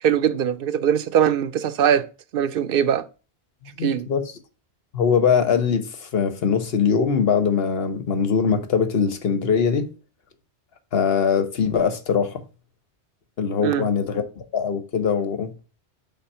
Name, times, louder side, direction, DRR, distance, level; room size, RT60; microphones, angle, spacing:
voice 1, 0.0-2.1 2.3-3.1 3.8-4.1 13.6-13.9, right 9 dB, 60° right, 0.7 m, -21 dB
voice 2, 3.8-4.2 4.9-9.9 10.9-12.4 13.4-15.5, left 6 dB, 60° left, 1.2 m, -22 dB
5.8 x 4.2 x 5.5 m
omnidirectional pair, 1.1 m